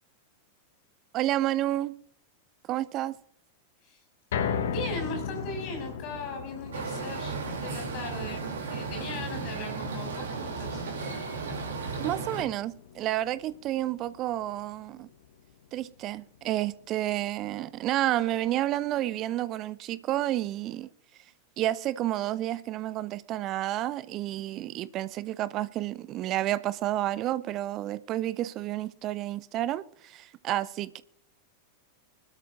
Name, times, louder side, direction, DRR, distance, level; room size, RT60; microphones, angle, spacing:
voice 1, 1.1-2.0 2.7-3.1 12.0-15.1 15.7-20.9 21.6-31.0, right 14 dB, 35° right, 0.7 m, -30 dB
sound 1, 4.3-16.6 17.0-17.1 17.5-17.6, left 7 dB, 60° left, 1.1 m, -38 dB
voice 2, 4.7-8.4 8.7-10.8, left 2 dB, 40° left, 6.4 m, -39 dB
sound 2, 6.7-12.4, right 4 dB, 65° right, 3.0 m, -35 dB
24.0 x 12.5 x 2.6 m
figure-of-eight pair, 90°, 0 cm